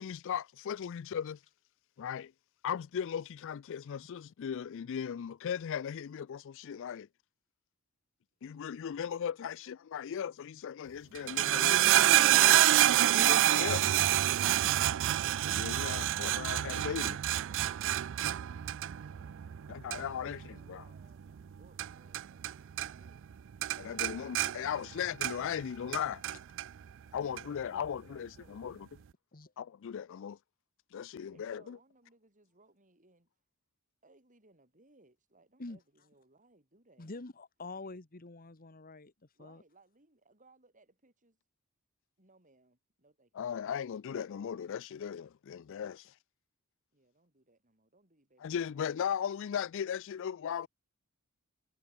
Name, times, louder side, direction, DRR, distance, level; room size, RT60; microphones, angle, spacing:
voice 1, 0.0-1.4 2.0-2.3 2.6-7.1 8.4-12.7 13.1-13.8 15.4-17.2 19.7-20.8 23.8-26.2 27.1-28.8 29.6-30.4 30.9-31.8 43.3-46.1 48.4-50.7, left 8 dB, 60° left, 0.4 m, -37 dB
sound 1, 11.2-22.5 22.8-23.3 23.6-25.6 25.9-26.7 27.4-27.5, right 13 dB, 55° right, 0.4 m, -27 dB
voice 2, 20.2-23.5 26.9-28.8 31.3-33.3 34.0-37.1 39.3-41.4 42.2-43.5 46.9-49.0, right 2 dB, 35° right, 6.7 m, -65 dB
voice 3, 37.0-39.1 39.4-39.6, left 3 dB, 40° left, 1.3 m, -46 dB
head